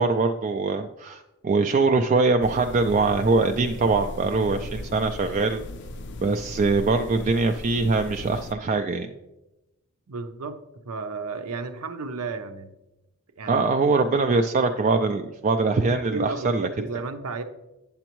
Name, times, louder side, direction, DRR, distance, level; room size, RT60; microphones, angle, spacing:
voice 1, 0.0-5.6 6.2-9.1 13.5-16.7, right 3 dB, 35° right, 5 dB, 0.3 m, -23 dB
sound 1, 2.4-8.5, left 1 dB, 55° left, 0.4 m, -37 dB
voice 2, 10.1-10.6 10.8-12.7 13.4-14.4 14.8-15.0 15.8-17.4, right 4 dB, 80° right, 9 dB, 0.7 m, -34 dB
8.7 x 7.0 x 3.0 m, 0.97 s
head